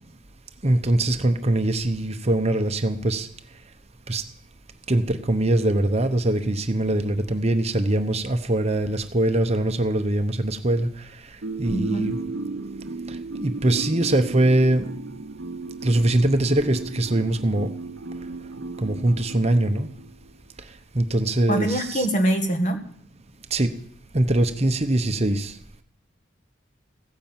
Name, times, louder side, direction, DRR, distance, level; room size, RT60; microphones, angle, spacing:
voice 1, 0.6-3.3 4.1-4.2 4.9-10.9 11.6-12.2 13.4-14.9 15.8-17.7 18.8-19.9 20.9-22.1 23.5-23.7 24.1-25.5, right 1 dB, 30° right, 7 dB, 0.9 m, -22 dB
sound 1, 11.4-20.2, right 3 dB, 65° right, 0.8 m, -34 dB
voice 2, 11.7-12.1 21.5-22.8, right 1 dB, 40° left, 5 dB, 1.9 m, -23 dB
16.0 x 9.9 x 7.4 m, 0.63 s
head